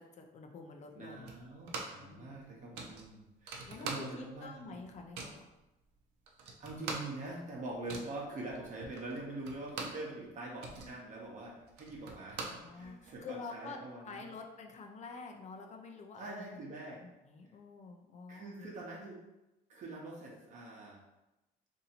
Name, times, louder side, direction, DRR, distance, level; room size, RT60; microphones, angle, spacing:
voice 1, 0.0-1.3 2.0-2.4 3.7-5.5 12.2-16.4 17.0-18.8, left 4 dB, 45° left, 3 dB, 0.5 m, -48 dB
voice 2, 0.9-4.8 6.6-14.3 16.2-17.0 18.3-19.2 19.7-21.0, right 2 dB, 45° right, -3 dB, 0.9 m, -44 dB
sound 1, 1.3-2.1 2.4-2.5 2.7-4.4 4.7-5.4 6.0-6.1 6.3-10.1 10.4-13.2, right 4 dB, 90° right, 0.6 m, -44 dB
2.7 x 2.7 x 4.2 m, 0.98 s
cardioid pair, 110°, 17 cm